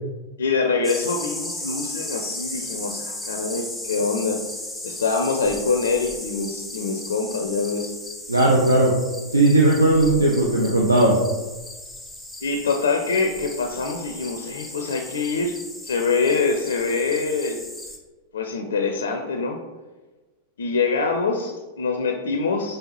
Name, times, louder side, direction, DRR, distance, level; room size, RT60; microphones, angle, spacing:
voice 1, 0.4-4.4 4.8-7.9 12.4-15.6 15.8-17.6 18.3-19.6 20.6-22.8, left 4 dB, 65° left, 3 dB, 0.4 m, -24 dB
sound 1, 0.8-18.0, left 1 dB, 5° left, 0.6 m, -36 dB
voice 2, 8.3-8.9 9.3-11.2, right 2 dB, 80° right, -2 dB, 0.6 m, -17 dB
5.3 x 3.3 x 2.9 m, 1.2 s
figure-of-eight pair, 90°, 0 cm